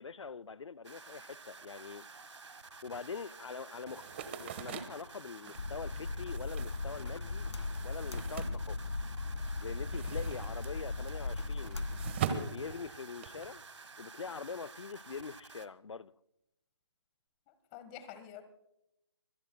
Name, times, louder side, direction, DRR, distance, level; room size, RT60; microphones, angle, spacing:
voice 1, 0.0-2.1 2.8-7.5 7.8-8.8 9.6-11.9 12.2-13.6 14.0-16.1, left 5 dB, 90° left, 0.5 m, -44 dB
sound 1, 0.8-15.7, right 4 dB, 85° right, 1.6 m, -52 dB
sound 2, 3.9-9.3 9.6-13.5, right 7 dB, 25° right, 1.3 m, -42 dB
sound 3, 5.5-12.1, left 3 dB, 75° left, 1.7 m, -38 dB
voice 2, 17.5-18.4, left 10 dB, 15° left, 1.3 m, -48 dB
24.5 x 17.5 x 2.2 m
hypercardioid pair, 160°, 15 cm